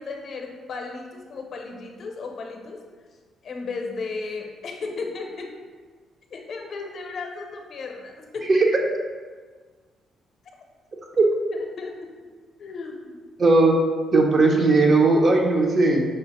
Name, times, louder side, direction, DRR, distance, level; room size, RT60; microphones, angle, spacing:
voice 1, 0.0-2.8 3.4-5.5 6.3-8.5 11.5-12.2 12.6-13.2, left 4 dB, 55° left, 2 dB, 0.6 m, -35 dB
voice 2, 8.5-8.8 11.2-11.3 13.4-13.8 14.1-16.0, right 3 dB, 45° right, 1 dB, 0.6 m, -17 dB
5.1 x 2.0 x 4.1 m, 1.5 s
cardioid pair, 90°, 0 cm